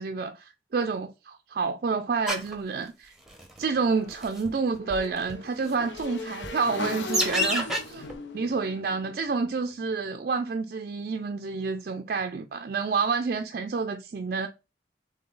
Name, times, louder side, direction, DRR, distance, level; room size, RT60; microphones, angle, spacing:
voice 1, 0.0-3.1 3.6-8.1 8.3-14.5, right 4 dB, 50° right, 0.4 m, -29 dB
sound 1, 2.3-2.5 3.3-3.6 4.1-4.5 4.9-5.0 5.3-5.4 6.0-6.1 6.4-6.5 7.1-7.8 8.1-8.2, equal, ahead, 0.8 m, -27 dB
Motorcycle / Engine, 3.9-10.0, left 3 dB, 80° left, 0.7 m, -38 dB
3.8 x 3.6 x 3.9 m
head